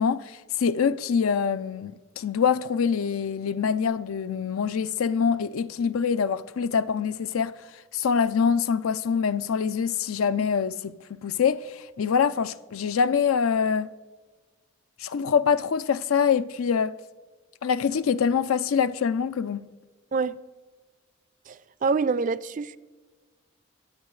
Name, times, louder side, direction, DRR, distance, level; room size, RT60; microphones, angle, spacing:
voice 1, 0.0-7.5 7.9-13.9 15.0-16.9 17.6-19.6, left 6 dB, 85° left, 0.4 m, -25 dB
voice 2, 21.5-22.8, right 4 dB, 40° right, 0.3 m, -26 dB
23.0 x 8.2 x 3.2 m
head